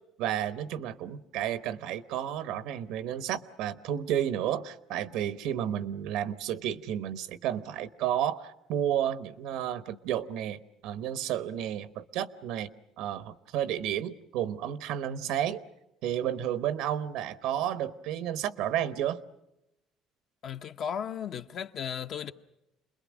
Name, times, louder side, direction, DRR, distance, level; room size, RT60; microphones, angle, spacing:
voice 1, 0.2-12.7 13.0-15.6 16.0-19.2, right 10 dB, 80° right, 1.0 m, -32 dB
voice 2, 20.4-22.3, left 8 dB, 50° left, 0.9 m, -35 dB
28.5 x 21.5 x 6.3 m
cardioid pair, 125°, 0 cm